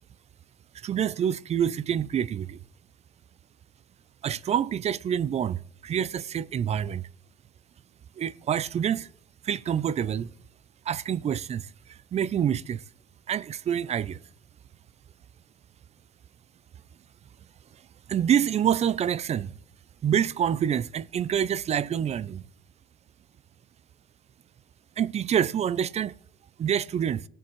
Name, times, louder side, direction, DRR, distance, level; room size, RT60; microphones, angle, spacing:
voice 1, 0.8-2.6 4.2-7.0 8.2-9.1 9.4-10.3 10.9-12.8 13.3-14.2 18.1-19.6 20.0-22.4 25.0-26.1 26.6-27.2, right 9 dB, 35° right, 0.5 m, -27 dB
19.5 x 7.4 x 3.1 m
hypercardioid pair, 65°, 19 cm